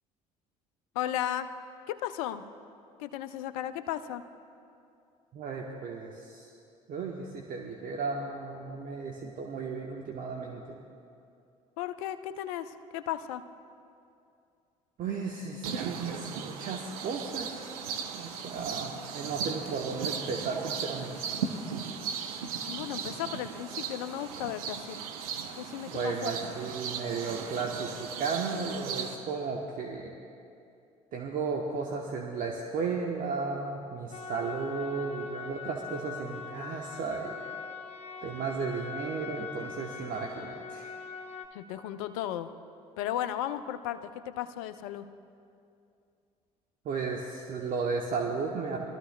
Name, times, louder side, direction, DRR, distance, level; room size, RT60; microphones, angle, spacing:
voice 1, 1.0-1.5 1.9-2.4 3.0-4.2 11.8-13.4 22.7-25.0 25.6-26.3 41.5-42.5 43.0-45.0, left 11 dB, 75° left, 12 dB, 0.5 m, -35 dB
voice 2, 5.3-6.5 6.9-10.8 15.0-21.2 25.9-30.1 31.1-37.4 38.2-40.9 46.8-48.8, right 4 dB, 50° right, 0 dB, 1.0 m, -34 dB
sound 1, 15.6-29.1, right 6 dB, 85° right, 0.7 m, -37 dB
sound 2, 34.1-41.5, left 5 dB, 35° left, 1.1 m, -42 dB
22.0 x 13.0 x 2.2 m, 2.5 s
hypercardioid pair, 60°, 18 cm